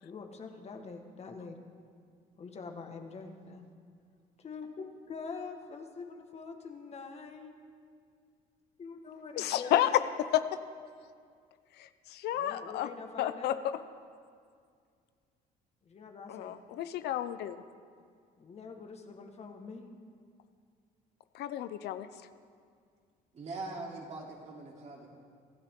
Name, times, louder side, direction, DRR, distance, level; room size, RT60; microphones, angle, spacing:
voice 1, 0.0-1.6 2.4-3.7 4.4-4.7 5.1-7.5 8.8-10.0 12.3-13.6 15.8-16.5 18.4-20.0, left 4 dB, 40° left, 4 dB, 1.6 m, -44 dB
voice 2, 9.4-10.0 10.3-10.4 11.8-12.9 13.2-13.6 16.3-17.6 21.3-22.1, left 13 dB, 75° left, 12 dB, 0.7 m, -31 dB
voice 3, 23.3-25.1, right 3 dB, 40° right, -2 dB, 3.3 m, -42 dB
25.5 x 12.0 x 3.8 m, 2.2 s
cardioid pair, 110°, 17 cm